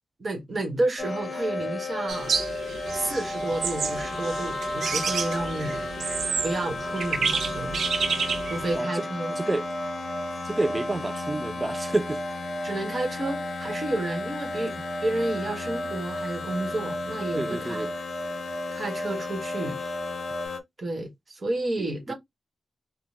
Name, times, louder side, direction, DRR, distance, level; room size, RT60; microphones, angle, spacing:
voice 1, 0.2-2.3 2.9-5.9 6.4-7.8 8.5-9.4 12.6-14.8 15.0-17.9 18.7-19.8 20.8-22.1, right 2 dB, 40° right, 1.4 m, -31 dB
sound 1, 1.0-20.6, left 3 dB, 50° left, 0.7 m, -35 dB
sound 2, 1.0-20.5, right 1 dB, 20° left, 1.0 m, -36 dB
sound 3, 2.1-8.8, right 5 dB, 80° right, 0.6 m, -30 dB
voice 2, 10.5-12.2 17.4-17.9 22.1-22.2, right 2 dB, 15° right, 0.3 m, -28 dB
3.9 x 2.2 x 3.5 m
wide cardioid pair, 155°, 0 cm